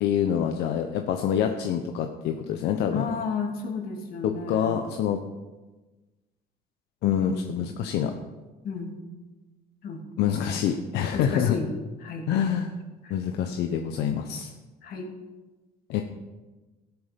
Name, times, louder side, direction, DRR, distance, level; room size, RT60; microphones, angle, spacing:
voice 1, 0.0-3.1 4.2-5.2 7.0-8.2 10.2-11.6 12.3-12.7 13.1-14.5 15.9-16.0, left 9 dB, 85° left, 5 dB, 1.0 m, -26 dB
voice 2, 2.9-4.8 7.0-7.7 8.6-8.9 9.8-10.0 11.1-11.7 12.0-12.3 13.0-13.1 14.8-15.1, left 4 dB, 60° left, 2 dB, 2.9 m, -32 dB
14.0 x 11.5 x 5.3 m, 1.2 s
cardioid pair, 110°, 17 cm